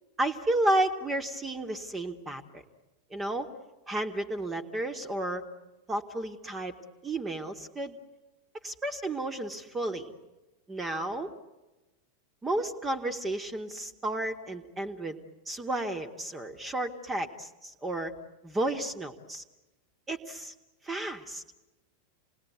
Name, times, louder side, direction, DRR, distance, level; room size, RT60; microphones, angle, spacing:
voice 1, 0.2-2.6 3.1-3.5 3.9-5.4 5.9-6.8 7.0-8.0 8.6-10.1 10.7-11.3 12.4-15.2 15.5-18.2 18.4-19.4 20.1-20.5 20.8-21.4, right 1 dB, 15° right, 6 dB, 1.9 m, -32 dB
27.5 x 20.0 x 9.5 m, 1.1 s
figure-of-eight pair, 90°, 0 cm